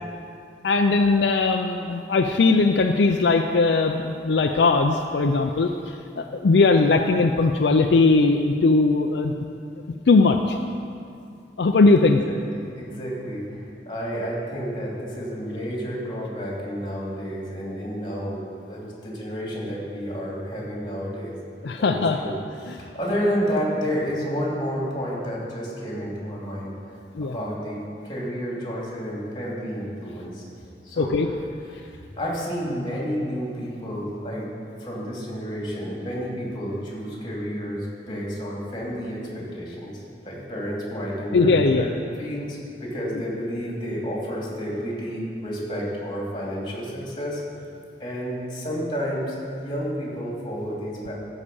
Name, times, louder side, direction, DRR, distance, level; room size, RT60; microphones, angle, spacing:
voice 1, 0.6-5.7 6.2-9.3 10.1-10.6 11.6-12.2 21.6-22.2 27.2-27.3 31.0-31.3 41.3-41.9, left 3 dB, 70° left, 5 dB, 0.5 m, -19 dB
voice 2, 12.0-21.3 21.8-27.8 28.0-30.4 30.8-31.3 31.7-34.5 34.8-41.9 42.2-47.4 48.0-51.1, equal, 25° left, -4 dB, 2.8 m, -30 dB
14.0 x 5.0 x 6.9 m, 2.4 s
head